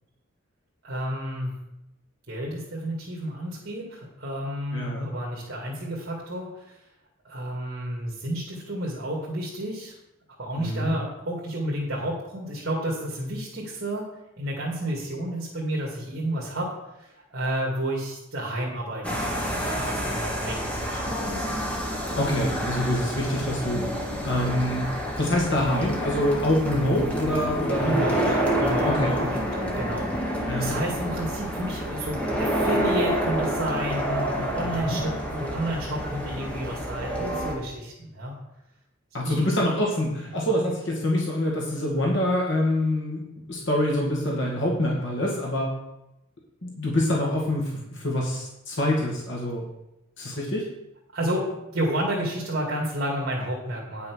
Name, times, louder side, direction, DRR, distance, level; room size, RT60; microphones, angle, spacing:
voice 1, 0.8-1.5 2.3-6.8 7.2-9.9 10.4-14.1 14.4-16.7 17.0-19.6 19.9-21.5 27.8-38.3 39.2-39.4 51.1-54.1, right 1 dB, 50° right, -3 dB, 2.2 m, -31 dB
voice 2, 4.7-5.1 10.6-10.9 22.2-23.8 24.3-24.9 25.2-28.2 28.8-29.2 30.5-30.7 34.6-35.0 39.1-43.2 43.5-45.7 46.6-49.7 50.2-50.6, left 1 dB, 60° left, -2 dB, 2.1 m, -25 dB
sound 1, 19.0-37.6, equal, 5° left, 1.7 m, -28 dB
9.5 x 6.1 x 6.2 m, 0.88 s
head